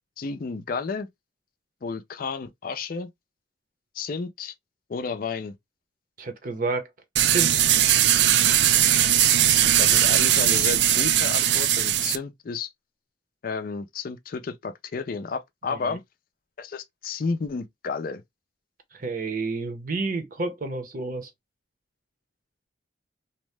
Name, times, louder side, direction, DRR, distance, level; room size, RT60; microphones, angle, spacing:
voice 1, 0.2-1.1 1.8-3.1 3.9-4.5 4.9-5.5 9.8-12.7 13.4-16.0 16.6-18.2, left 4 dB, 50° left, 0.4 m, -32 dB
voice 2, 6.2-6.9 7.3-7.7 15.7-16.0 18.9-21.3, right 3 dB, 45° right, 0.7 m, -30 dB
sound 1, 7.2-12.2, right 11 dB, 65° right, 0.3 m, -19 dB
2.7 x 2.1 x 3.2 m
head